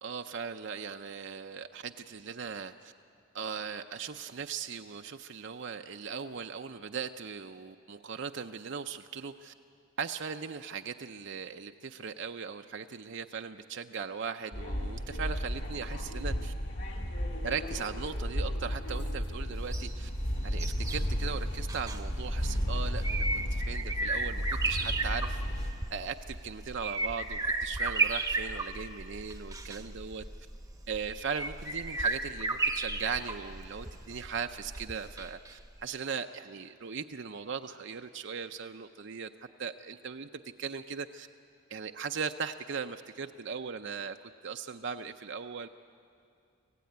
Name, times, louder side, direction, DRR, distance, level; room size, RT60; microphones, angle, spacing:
voice 1, 0.0-2.9 3.3-9.5 10.0-16.5 17.4-20.1 20.4-25.4 25.9-30.2 30.9-39.3 39.6-40.3 40.6-41.3 41.7-44.2 44.4-45.7, right 6 dB, 55° right, 6 dB, 0.6 m, -38 dB
sound 1, 14.5-25.7, equal, 55° left, 2.6 m, -33 dB
sound 2, 19.6-35.5 35.8-35.9, right 3 dB, 15° right, 0.9 m, -34 dB
25.5 x 16.0 x 9.4 m, 2.4 s
head